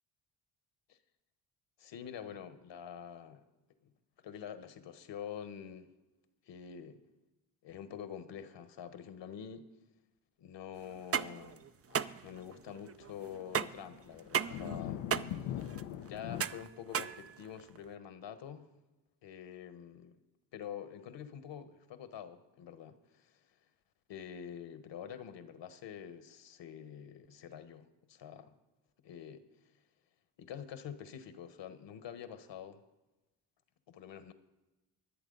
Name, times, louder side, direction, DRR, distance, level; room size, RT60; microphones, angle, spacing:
voice 1, 1.8-3.4 3.8-3.9 4.2-5.9 6.5-7.0 7.6-9.7 10.4-11.7 12.2-15.6 16.0-18.7 19.2-20.2 20.5-23.4 24.1-28.5 29.0-29.4 30.4-32.8 33.9-34.3, left 8 dB, 65° left, 11 dB, 1.4 m, -47 dB
sound 1, 10.9-17.8, right 8 dB, 30° right, 0.6 m, -37 dB
sound 2, 11.9-12.0 13.0-16.4, left 11 dB, 90° left, 0.8 m, -40 dB
24.0 x 8.1 x 4.0 m, 1.0 s
supercardioid pair, 55°, 47 cm